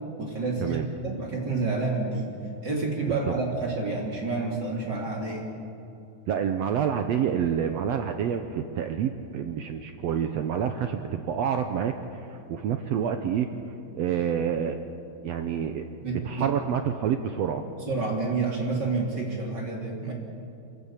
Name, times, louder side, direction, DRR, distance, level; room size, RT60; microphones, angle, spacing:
voice 1, 0.2-2.3 2.6-5.5 16.0-16.5 17.8-20.1, right 3 dB, 35° right, -1 dB, 3.3 m, -29 dB
voice 2, 6.3-13.5 13.9-14.8 15.2-17.6, right 8 dB, 70° right, 7 dB, 1.7 m, -28 dB
27.0 x 14.5 x 8.4 m, 2.7 s
omnidirectional pair, 3.5 m